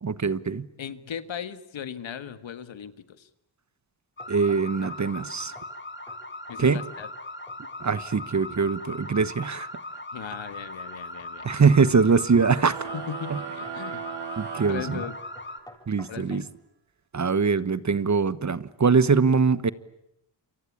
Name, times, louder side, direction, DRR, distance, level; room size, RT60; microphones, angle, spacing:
voice 1, 0.0-0.7 4.3-5.5 6.6-6.8 7.8-9.7 11.4-12.9 13.3-13.4 14.4-15.0 15.9-16.4 17.1-19.7, right 5 dB, 40° right, 1.2 m, -22 dB
voice 2, 0.8-3.3 6.5-7.1 10.1-11.4 12.9-14.0 14.7-15.1 16.1-16.5, left 8 dB, 75° left, 1.7 m, -37 dB
sound 1, 4.2-15.6, left 2 dB, 25° left, 3.1 m, -39 dB
sound 2, 4.2-5.1 5.5-5.8 6.1-6.2 6.5-7.2 7.5-7.8 11.2-11.8 12.4-12.9 13.6-13.9 14.2-14.4 14.6-16.5, left 1 dB, 10° left, 7.6 m, -50 dB
sound 3, 12.6-15.6, right 9 dB, 65° right, 1.2 m, -38 dB
28.5 x 23.5 x 8.6 m
cardioid pair, 55°, 46 cm